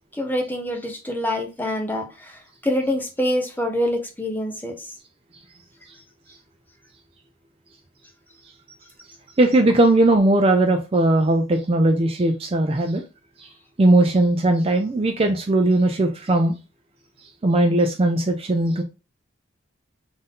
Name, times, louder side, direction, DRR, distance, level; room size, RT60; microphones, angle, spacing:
voice 1, 0.1-4.9, left 1 dB, 10° left, 0.7 m, -26 dB
voice 2, 9.4-13.0 13.4-13.5 13.8-16.5 17.2-18.8, right 2 dB, 30° right, 0.4 m, -19 dB
3.8 x 2.6 x 3.7 m
head